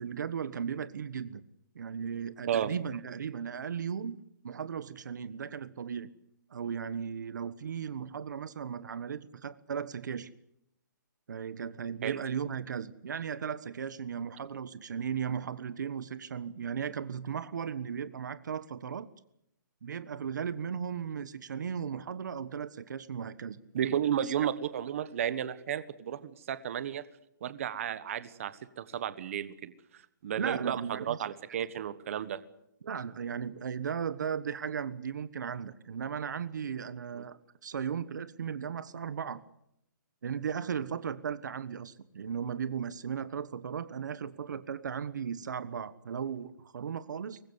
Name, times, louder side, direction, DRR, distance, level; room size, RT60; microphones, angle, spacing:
voice 1, 0.0-1.4 1.7-4.2 4.4-6.1 6.5-10.3 11.3-19.1 19.8-23.6 24.2-24.5 30.4-31.2 32.8-39.4 40.2-47.4, right 7 dB, 65° right, 15 dB, 1.3 m, -36 dB
voice 2, 23.7-27.0 27.4-32.4 37.1-37.2, right 9 dB, 40° right, 14 dB, 1.4 m, -33 dB
23.5 x 20.0 x 8.1 m, 0.79 s
hypercardioid pair, 170°, 11 cm